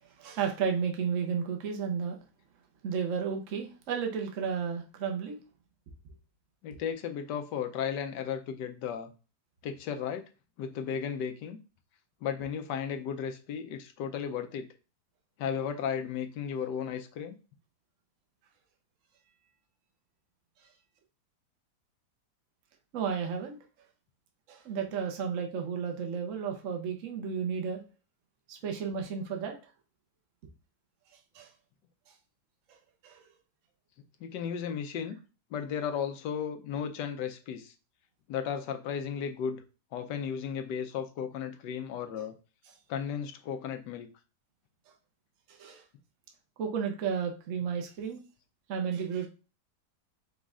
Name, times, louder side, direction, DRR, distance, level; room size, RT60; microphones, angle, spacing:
voice 1, 0.2-2.2 2.8-5.4 22.9-23.6 24.5-27.8 28.5-29.6 31.3-31.5 32.7-32.8 33.0-33.2 45.5-45.8 46.6-48.2 48.7-49.3, right 6 dB, 55° right, 3 dB, 1.0 m, -32 dB
voice 2, 6.6-9.1 9.6-10.2 10.6-11.6 12.2-14.7 15.4-17.3 34.2-35.2 35.5-37.7 38.3-39.6 39.9-42.3 42.9-44.1, left 7 dB, 85° left, 7 dB, 1.3 m, -34 dB
5.2 x 2.3 x 3.6 m, 0.33 s
omnidirectional pair, 1.8 m